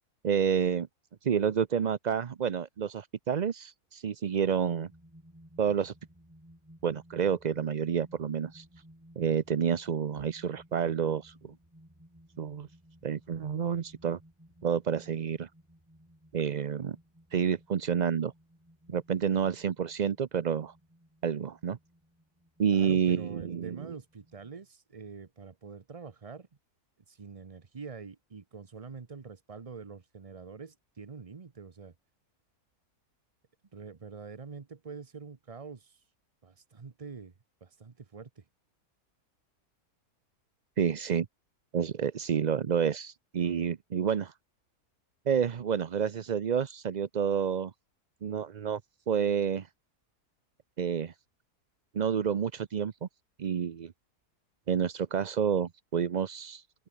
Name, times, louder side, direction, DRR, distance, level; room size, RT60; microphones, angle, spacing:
voice 1, 0.2-0.9 1.2-4.9 5.6-5.9 6.8-8.6 9.2-11.5 12.4-12.7 13.0-14.2 14.6-15.5 16.3-17.0 17.3-18.3 18.9-20.7 21.2-21.8 22.6-23.9 40.8-41.3 41.7-44.3 45.3-47.7 48.2-48.8 49.1-49.7 50.8-51.1 51.9-53.1 53.4-53.9 54.7-56.6, right 7 dB, 60° right, 0.4 m, -29 dB
sound 1, 4.6-24.5, equal, 10° right, 5.5 m, -58 dB
voice 2, 22.7-26.5 27.1-31.9 33.7-36.0 36.4-37.3 37.6-38.4, right 5 dB, 30° right, 0.8 m, -45 dB
open air
omnidirectional pair, 1.6 m